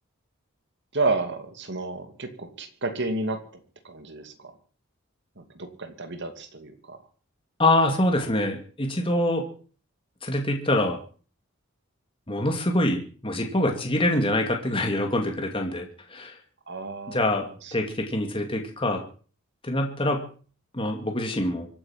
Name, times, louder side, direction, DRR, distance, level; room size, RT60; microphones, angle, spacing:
voice 1, 0.9-4.5 5.4-7.0 16.7-17.7, right 3 dB, 55° right, 7 dB, 2.6 m, -31 dB
voice 2, 7.6-9.5 10.2-11.0 12.3-16.3 17.1-19.0 19.6-20.3 20.7-21.7, left 1 dB, 25° left, 3 dB, 2.4 m, -25 dB
25.0 x 8.9 x 6.0 m, 0.41 s
head